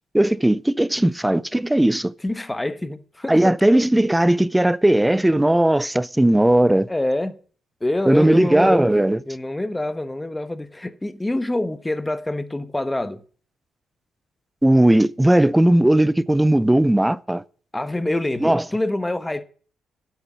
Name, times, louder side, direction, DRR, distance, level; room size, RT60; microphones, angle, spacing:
voice 1, 0.1-2.1 3.3-6.9 8.1-9.2 14.6-17.4 18.4-18.6, right 1 dB, 10° right, 0.7 m, -17 dB
voice 2, 2.2-3.6 6.7-7.4 7.8-8.9 9.3-13.2 17.7-19.4, left 1 dB, 15° left, 1.2 m, -26 dB
10.0 x 7.9 x 9.7 m
supercardioid pair, 55°, 0 cm